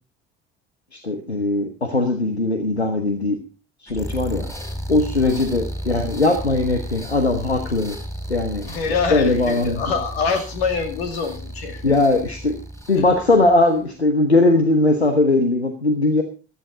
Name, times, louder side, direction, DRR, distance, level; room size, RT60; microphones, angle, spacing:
voice 1, 0.9-3.4 3.8-4.5 4.9-8.0 8.3-8.7 9.1-10.0 11.8-12.5 12.9-16.2, left 2 dB, 90° left, 6 dB, 1.1 m, -19 dB
sound 1, 3.9-13.9, equal, 10° left, 4.0 m, -33 dB
voice 2, 8.6-11.8 12.9-13.0, left 5 dB, 70° left, 6 dB, 2.4 m, -25 dB
14.5 x 13.5 x 3.9 m, 0.36 s
figure-of-eight pair, 55°, 32 cm